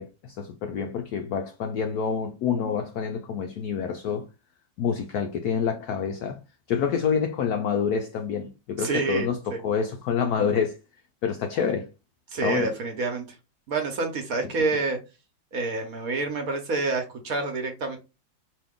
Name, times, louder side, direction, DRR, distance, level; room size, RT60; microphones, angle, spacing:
voice 1, 0.0-4.3 4.8-6.4 6.7-10.8 11.2-11.9 12.4-12.7 14.4-14.6, left 6 dB, 80° left, 0.8 m, -27 dB
voice 2, 8.8-9.6 12.3-13.2 13.7-15.0 15.5-18.0, right 3 dB, 55° right, 1.2 m, -28 dB
5.2 x 2.8 x 3.5 m
omnidirectional pair, 2.1 m